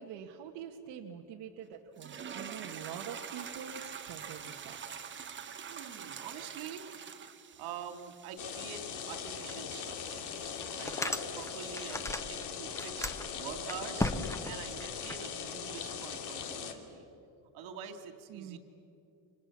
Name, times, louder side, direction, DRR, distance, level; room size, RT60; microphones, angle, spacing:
voice 1, 0.0-4.8 6.0-6.1 18.3-18.6, right 8 dB, 60° right, 1 dB, 1.6 m, -45 dB
sound 1, 2.0-12.1, right 7 dB, 25° right, 1.1 m, -46 dB
voice 2, 5.7-7.0 7.6-10.4 10.8-17.1 17.5-18.6, right 8 dB, 80° right, 6 dB, 2.9 m, -46 dB
sound 2, 8.4-16.7, left 7 dB, 55° left, 2.5 m, -40 dB
sound 3, 9.5-9.6 10.1-10.2 10.6-12.4 12.7-15.2, left 2 dB, 5° left, 0.6 m, -36 dB
29.5 x 25.5 x 7.4 m, 2.7 s
cardioid pair, 165°, 48 cm